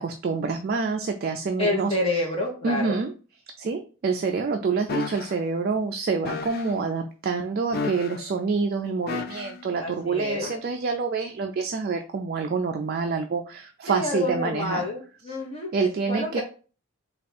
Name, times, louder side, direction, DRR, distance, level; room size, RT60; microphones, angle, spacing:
voice 1, 0.0-2.2 2.6-3.1 3.6-14.8 15.7-16.4, right 4 dB, 45° right, 4 dB, 0.3 m, -27 dB
voice 2, 1.6-3.0 9.8-10.5 13.9-15.7 16.1-16.4, left 2 dB, 30° left, -1 dB, 1.0 m, -28 dB
sound 1, 4.9-5.3 6.2-6.7 7.7-8.3 9.1-9.6 10.4-10.6, left 5 dB, 45° left, 0.4 m, -32 dB
3.5 x 2.4 x 4.2 m, 0.37 s
head